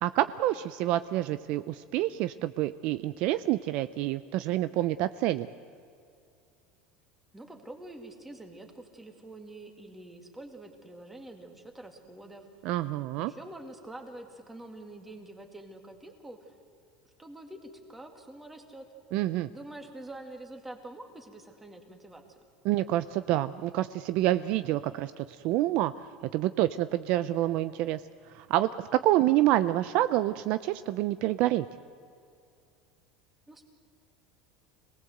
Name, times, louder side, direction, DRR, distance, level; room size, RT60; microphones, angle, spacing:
voice 1, 0.0-5.5 12.6-13.3 19.1-19.5 22.6-25.9 26.3-28.0 28.3-31.7, right 14 dB, 50° right, 13 dB, 0.6 m, -27 dB
voice 2, 7.3-12.4 13.2-16.5 17.2-18.8 19.5-22.2 33.5-33.6, right 1 dB, 10° right, 4 dB, 2.3 m, -46 dB
26.5 x 19.0 x 7.9 m, 2.4 s
cardioid pair, 155°, 2 cm